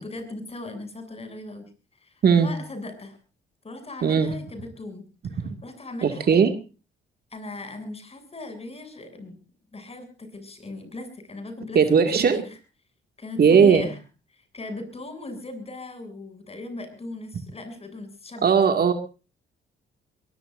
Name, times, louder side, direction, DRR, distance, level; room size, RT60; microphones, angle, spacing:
voice 1, 0.0-1.7 2.0-3.2 3.6-5.0 5.3-6.3 7.3-9.4 9.7-12.6 13.2-14.0 14.3-18.5, left 2 dB, 30° left, 8 dB, 7.5 m, -38 dB
voice 2, 4.0-4.3 6.0-6.5 11.7-12.4 13.4-13.9 18.4-18.9, right 6 dB, 50° right, 7 dB, 2.2 m, -18 dB
23.0 x 22.5 x 2.6 m, 0.34 s
cardioid pair, 90°, 20 cm